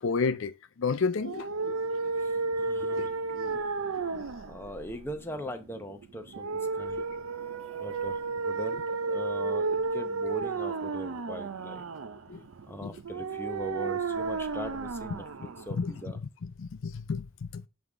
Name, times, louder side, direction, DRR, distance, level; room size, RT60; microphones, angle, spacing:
voice 1, 0.0-2.0 2.8-3.1 4.0-4.3 7.0-7.1 12.3-12.4 12.8-12.9 15.7-15.9 16.4-17.6, left 5 dB, 60° left, 0.4 m, -32 dB
sound 1, 1.2-16.2, right 4 dB, 70° right, 0.6 m, -33 dB
voice 2, 2.2-3.6 4.5-6.5 6.7-7.0 7.8-8.8 9.1-11.8 12.7-16.2, equal, 10° left, 0.7 m, -41 dB
7.8 x 3.6 x 3.7 m
head